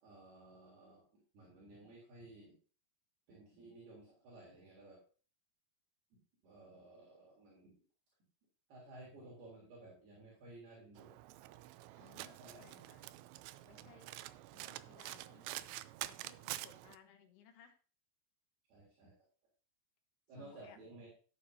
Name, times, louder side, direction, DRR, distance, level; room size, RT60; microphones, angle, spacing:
voice 1, 0.0-2.6 3.3-5.0 6.4-7.7 8.7-11.1 12.2-12.6 13.7-14.0 15.1-15.3 18.7-19.3 20.3-21.1, right 2 dB, 65° right, -5 dB, 5.3 m, -56 dB
Domestic sounds home sounds, 11.0-17.0, right 15 dB, 90° right, 2.9 m, -48 dB
voice 2, 12.0-13.1 13.6-14.1 14.5-15.7 16.1-17.8 20.4-20.8, left 7 dB, 75° left, 5 dB, 3.2 m, -62 dB
14.5 x 9.4 x 2.7 m, 0.38 s
omnidirectional pair, 5.1 m